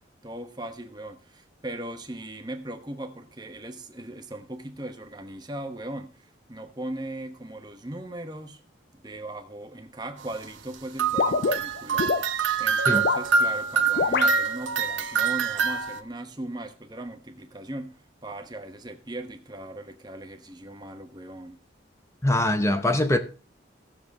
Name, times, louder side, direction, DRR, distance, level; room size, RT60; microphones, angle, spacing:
voice 1, 0.2-8.6 8.9-21.6, right 1 dB, 20° right, 1.0 m, -38 dB
sound 1, 11.0-16.0, right 5 dB, 85° right, 0.9 m, -25 dB
sound 2, 11.2-12.3 12.9-13.3 14.0-14.3, left 5 dB, 55° left, 0.4 m, -25 dB
voice 2, 22.2-23.2, left 1 dB, 15° left, 0.7 m, -22 dB
16.5 x 7.0 x 3.5 m
head